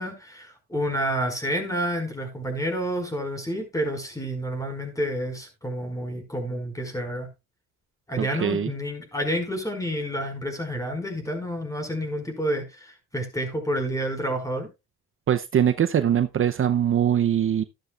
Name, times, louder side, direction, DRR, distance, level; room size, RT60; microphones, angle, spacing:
voice 1, 0.0-7.3 8.1-14.7, equal, 10° left, 5.0 m, -29 dB
voice 2, 8.2-8.7 15.3-17.6, right 9 dB, 45° right, 0.7 m, -22 dB
13.0 x 11.5 x 2.4 m
cardioid pair, 90°, 30 cm